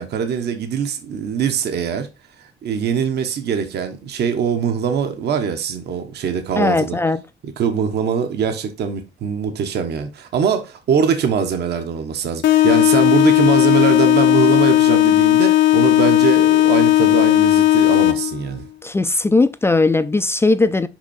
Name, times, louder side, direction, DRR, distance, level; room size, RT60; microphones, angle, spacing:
voice 1, 0.0-2.1 2.4-7.0 7.6-18.6, right 7 dB, 55° right, 1.1 m, -22 dB
voice 2, 6.6-7.2 18.8-20.9, left 3 dB, 10° left, 0.4 m, -18 dB
sound 1, 12.4-18.4, left 14 dB, 70° left, 0.7 m, -15 dB
6.0 x 5.5 x 4.2 m
cardioid pair, 170°, 20 cm